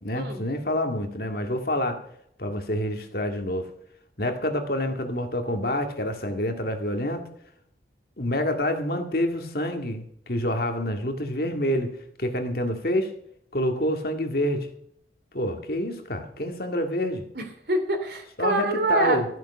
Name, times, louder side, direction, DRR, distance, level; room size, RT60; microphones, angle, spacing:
voice 1, 0.0-2.0 2.4-3.7 4.2-7.3 8.2-13.1 13.5-14.7 15.3-17.2 18.4-19.3, left 1 dB, 55° left, 5 dB, 2.0 m, -27 dB
voice 2, 17.3-19.2, right 2 dB, 55° right, 6 dB, 2.7 m, -25 dB
14.0 x 9.7 x 5.8 m, 0.69 s
head